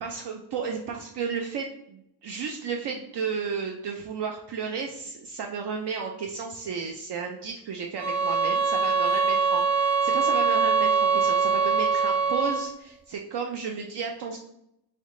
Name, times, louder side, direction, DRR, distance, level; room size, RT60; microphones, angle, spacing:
voice 1, 0.0-14.4, right 6 dB, 75° right, 2 dB, 0.5 m, -33 dB
sound 1, 8.0-12.7, right 5 dB, 40° right, 1.4 m, -23 dB
3.5 x 3.1 x 3.7 m, 0.81 s
wide cardioid pair, 100°, 41 cm